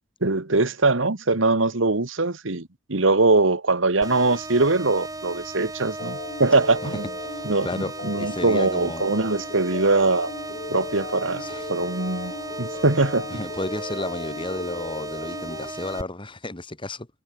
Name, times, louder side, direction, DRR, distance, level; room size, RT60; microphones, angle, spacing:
voice 1, 0.2-7.1 7.4-10.3 10.7-11.4 11.7-13.4, right 3 dB, 75° right, 1.7 m, -22 dB
sound 1, 4.0-16.0, right 2 dB, 20° right, 4.3 m, -36 dB
sound 2, 6.0-15.7, left 2 dB, 50° left, 2.3 m, -37 dB
voice 2, 7.3-9.0 11.4-11.7 13.3-17.1, left 2 dB, 25° left, 2.1 m, -33 dB
head